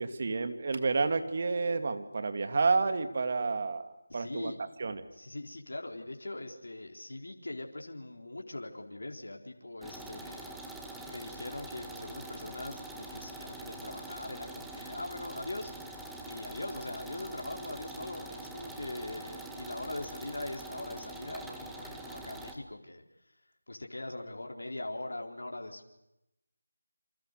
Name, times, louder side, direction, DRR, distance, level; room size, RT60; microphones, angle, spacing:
voice 1, 0.0-4.5 4.8-5.0, right 4 dB, 45° right, 8 dB, 2.6 m, -30 dB
voice 2, 4.1-4.6 5.1-10.5 11.0-15.7 16.2-23.4 23.7-25.9, left 2 dB, 80° left, 2 dB, 4.1 m, -41 dB
sound 1, 9.8-22.6, right 2 dB, ahead, 1.8 m, -44 dB
28.5 x 27.0 x 6.8 m, 0.89 s
figure-of-eight pair, 170°, 0 cm